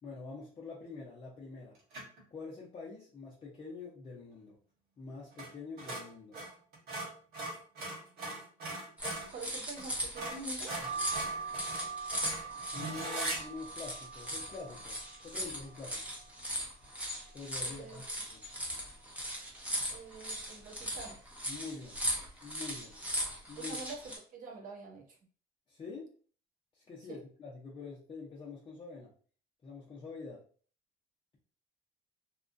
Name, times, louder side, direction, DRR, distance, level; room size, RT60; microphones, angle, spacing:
voice 1, 0.0-1.8 2.3-4.6 5.0-6.4 10.8-10.9 12.7-16.0 17.3-18.4 21.5-22.0 22.4-22.9 23.5-23.8 25.7-26.1 26.7-29.1 29.6-30.4, left 4 dB, 30° left, -5 dB, 0.7 m, -46 dB
sound 1, 1.9-2.2 5.3-5.5 5.8-9.3 9.8-9.9 10.1-13.4, right 2 dB, 75° right, 1.5 m, -40 dB
sound 2, 9.0-24.2, equal, 10° right, 0.8 m, -39 dB
voice 2, 9.3-10.7 17.6-18.0 19.9-21.2 23.6-25.2 27.1-27.2, right 3 dB, 55° right, 2 dB, 0.9 m, -46 dB
sound 3, 10.8-16.5 17.0-17.7 18.1-18.2 18.4-19.5 20.0-20.4 21.1-21.5 22.3-22.5 22.8-23.0, right 5 dB, 30° right, 1.1 m, -44 dB
2.9 x 2.3 x 2.6 m, 0.43 s
cardioid pair, 110°, 17 cm